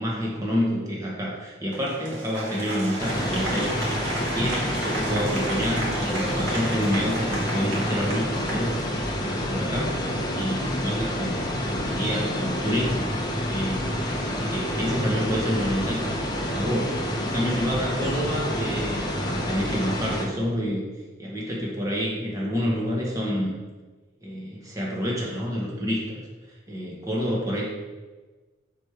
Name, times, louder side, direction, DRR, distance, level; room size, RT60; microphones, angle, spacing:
voice 1, 0.0-14.0 14.2-20.8 21.2-23.5 24.2-26.2 26.7-27.7, equal, 15° right, -3 dB, 1.3 m, -28 dB
Applause, 1.7-9.3, right 1 dB, 65° right, 1.9 m, -34 dB
sound 1, 3.0-20.3, equal, 20° left, 0.8 m, -28 dB
6.5 x 4.4 x 5.0 m, 1.3 s
head